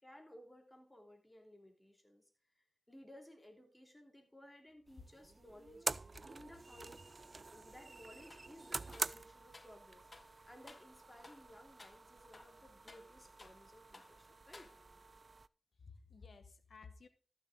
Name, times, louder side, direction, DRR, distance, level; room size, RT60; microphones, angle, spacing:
voice 1, 0.0-2.2 2.5-5.9 6.2-10.1 10.5-14.7, equal, 15° left, 2 dB, 3.2 m, -58 dB
sound 1, 4.9-15.5, right 3 dB, 55° right, 0.3 m, -47 dB
sound 2, 8.3-8.5 8.9-9.8 10.1-10.3 10.7-10.9 11.2-11.5 11.8-12.0 12.3-13.7 13.9-14.2 14.5-15.1, left 3 dB, 45° left, 0.4 m, -59 dB
voice 2, 15.7-17.1, left 4 dB, 75° left, 10 dB, 1.1 m, -56 dB
14.0 x 6.6 x 3.8 m, 0.39 s
cardioid pair, 45°, 0 cm